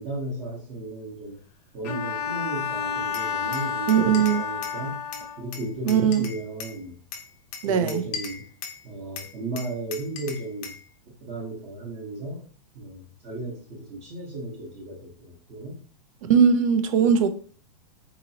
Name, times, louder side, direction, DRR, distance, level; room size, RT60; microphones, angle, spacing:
voice 1, 0.0-1.4 1.7-5.0 5.4-7.0 7.7-8.5 8.8-10.8 11.1-12.4 12.7-15.8 17.0-17.1, right 2 dB, 25° right, 0.9 m, -35 dB
Bowed string instrument, 1.8-5.6, left 6 dB, 90° left, 0.7 m, -30 dB
Glass, 3.1-4.8 5.1-6.8 7.1-8.8 9.2-10.8, left 6 dB, 30° left, 0.5 m, -38 dB
voice 2, 3.9-4.4 5.9-6.3 7.6-8.0 16.2-17.3, right 7 dB, 55° right, 0.6 m, -20 dB
4.0 x 3.0 x 2.7 m
supercardioid pair, 170°, 20 cm